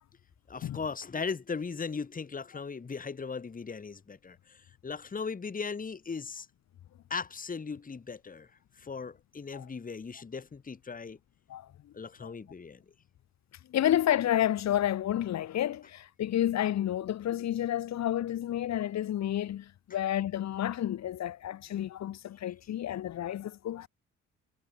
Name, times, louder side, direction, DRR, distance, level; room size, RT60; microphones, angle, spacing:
voice 1, 0.5-6.5 7.1-8.5 8.8-11.2 11.9-12.8, left 5 dB, 30° left, 1.8 m, -38 dB
voice 2, 13.7-23.9, left 11 dB, 60° left, 1.3 m, -30 dB
cardioid pair, 90°, 30 cm